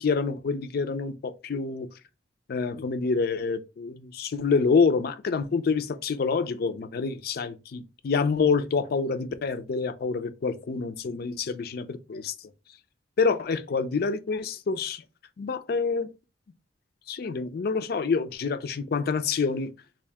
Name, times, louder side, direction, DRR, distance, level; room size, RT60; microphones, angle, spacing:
voice 1, 0.0-1.9 2.5-12.3 13.2-15.0 15.4-16.1 17.1-19.7, left 5 dB, 55° left, 0.4 m, -27 dB
3.6 x 2.4 x 3.4 m
head